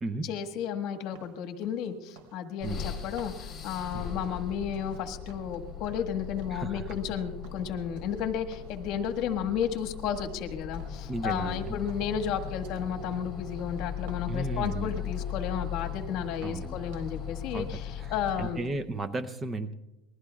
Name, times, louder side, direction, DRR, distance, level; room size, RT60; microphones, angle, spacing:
voice 1, 0.2-18.6, left 8 dB, 50° left, 5 dB, 1.6 m, -33 dB
sound 1, 1.1-5.0 5.3-7.2 7.4-8.2 8.5-9.4 9.6-11.6 11.9-15.5 15.8-16.1 16.3-17.2 17.5-18.4 18.6-18.8, right 4 dB, 70° right, 3.9 m, -54 dB
sound 2, 2.6-18.8, left 9 dB, 20° left, 3.8 m, -39 dB
voice 2, 6.5-7.0 11.1-11.8 14.3-15.0 16.4-16.8 17.5-17.7 18.0-19.7, right 2 dB, 15° right, 8 dB, 0.6 m, -34 dB
27.0 x 21.0 x 2.4 m, 1.0 s
supercardioid pair, 150°, 0 cm